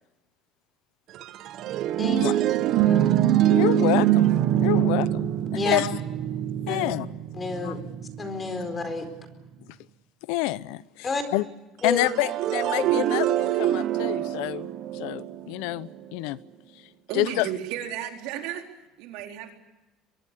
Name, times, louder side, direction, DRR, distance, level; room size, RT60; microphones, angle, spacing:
sound 1, 1.1-8.8 11.9-16.0, right 12 dB, 50° right, 1.3 m, -24 dB
voice 1, 2.0-2.4 2.8-3.2 5.5-5.8 6.7-6.9 7.3-7.8 8.2-9.1 11.0-11.2 11.8-12.1, left 3 dB, 20° left, 9 dB, 4.5 m, -29 dB
voice 2, 3.5-5.3 5.7-5.9 6.7-7.1 7.6-7.7 10.3-11.4 11.8-14.7 14.9-16.4 17.1-17.5, left 19 dB, 80° left, 17 dB, 0.8 m, -28 dB
voice 3, 17.1-19.5, right 9 dB, 75° right, 3 dB, 4.2 m, -34 dB
23.5 x 23.5 x 8.5 m, 1.0 s
cardioid pair, 145°, 0 cm